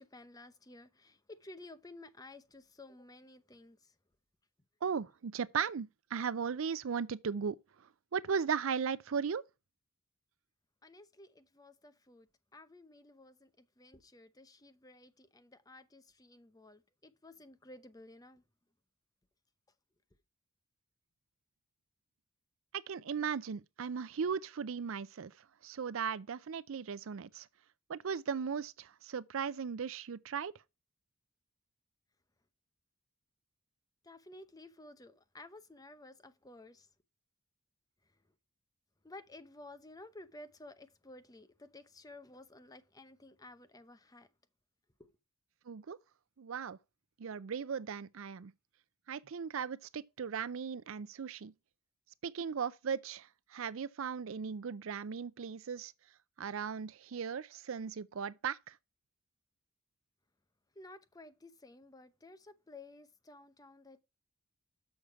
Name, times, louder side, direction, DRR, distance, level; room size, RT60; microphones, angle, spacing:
voice 1, 0.0-3.9 10.8-18.4 34.0-36.9 39.0-44.3 45.0-45.1 60.7-64.0, left 2 dB, 15° left, 0.7 m, -54 dB
voice 2, 4.8-7.6 8.1-9.4 22.9-25.3 25.6-27.5 27.9-30.5 45.7-46.0 46.4-46.8 47.2-48.5 49.1-51.5 52.2-55.9 56.4-58.8, right 6 dB, 65° right, 0.5 m, -37 dB
7.0 x 6.6 x 4.6 m
head